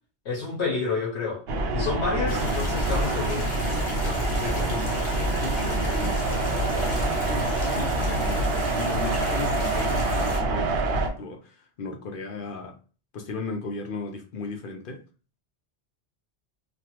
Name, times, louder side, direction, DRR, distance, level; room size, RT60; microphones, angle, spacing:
voice 1, 0.2-1.5 1.7-3.6 4.2-5.0, left 4 dB, 75° left, 1.0 m, -30 dB
sound 1, 1.5-11.1, right 2 dB, 70° right, 0.8 m, -26 dB
sound 2, 2.3-10.4, left 2 dB, 45° left, 1.0 m, -36 dB
voice 2, 5.3-12.8 13.1-15.0, left 3 dB, 60° left, 0.6 m, -36 dB
3.2 x 2.1 x 2.8 m
omnidirectional pair, 1.1 m